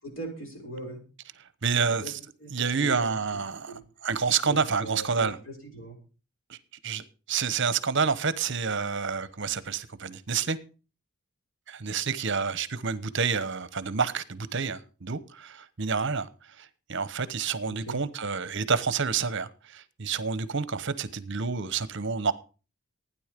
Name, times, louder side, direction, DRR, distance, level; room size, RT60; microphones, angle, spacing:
voice 1, 0.0-1.0 2.0-2.1 2.4-3.4 3.7-3.8 4.4-6.0 17.7-18.0, right 2 dB, 60° left, 6.3 m, -40 dB
voice 2, 1.6-2.2 2.5-5.4 6.5-6.6 6.8-10.6 11.7-16.3 16.6-22.3, right 5 dB, 55° right, 1.0 m, -29 dB
15.5 x 9.9 x 5.2 m
head